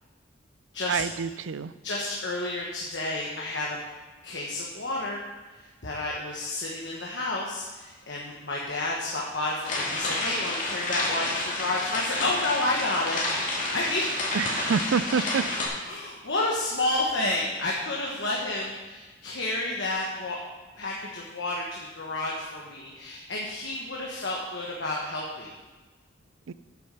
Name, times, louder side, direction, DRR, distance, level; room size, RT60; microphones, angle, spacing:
voice 1, 0.9-1.7 14.3-15.4 26.5-26.6, right 6 dB, 75° right, 15 dB, 0.4 m, -27 dB
voice 2, 1.8-3.8 4.2-5.2 5.8-13.2 13.7-14.1 15.9-20.4 20.7-25.5, left 2 dB, 60° left, -3 dB, 1.3 m, -30 dB
sound 1, 9.6-15.7, left 2 dB, 40° left, 2.6 m, -30 dB
8.9 x 6.5 x 6.8 m, 1.3 s
head